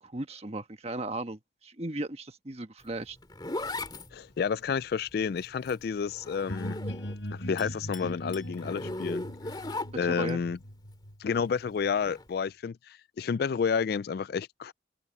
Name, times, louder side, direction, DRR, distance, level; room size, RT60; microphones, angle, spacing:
voice 1, 0.0-3.2 10.0-10.4, right 2 dB, 35° right, 1.3 m, -36 dB
Zipper (clothing), 2.8-7.3 7.6-10.3 11.9-12.2, left 2 dB, 20° left, 2.3 m, -38 dB
voice 2, 4.1-6.8 7.3-9.6 10.0-10.6 11.2-14.7, left 6 dB, 50° left, 0.3 m, -30 dB
sound 1, 6.5-12.1, equal, 70° left, 6.7 m, -40 dB
Chink clink, 7.6-9.2, left 10 dB, 90° left, 2.5 m, -51 dB
open air
head